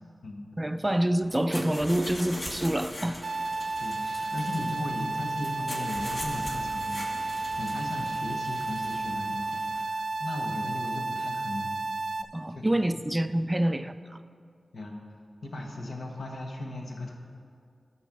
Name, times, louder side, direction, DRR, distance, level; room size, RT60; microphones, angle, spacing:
voice 1, 0.6-3.2 12.3-14.2, right 1 dB, 15° right, 11 dB, 0.3 m, -27 dB
sound 1, 1.2-9.8, left 1 dB, 40° left, 1.6 m, -41 dB
sound 2, 3.2-12.2, right 3 dB, 75° right, 0.5 m, -32 dB
voice 2, 3.8-11.8 12.5-13.0 13.6-13.7 14.7-15.0 15.4-17.1, left 1 dB, 80° left, 1 dB, 1.4 m, -37 dB
11.5 x 6.2 x 6.1 m, 2.3 s
wide cardioid pair, 80°, 0 cm